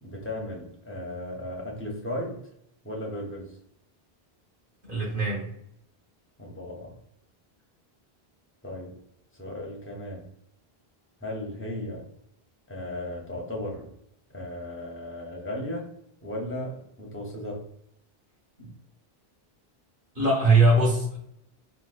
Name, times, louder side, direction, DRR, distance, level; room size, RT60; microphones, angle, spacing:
voice 1, 0.0-2.4 2.8-3.5 6.4-7.0 8.6-9.0 9.3-10.3 11.2-12.1 12.7-13.9 14.3-15.9 16.2-17.7, left 1 dB, 15° left, -1 dB, 0.6 m, -35 dB
voice 2, 4.8-5.5 18.6-18.7 20.1-21.2, right 2 dB, 55° right, -4 dB, 1.5 m, -21 dB
3.8 x 2.3 x 2.4 m, 0.72 s
omnidirectional pair, 1.0 m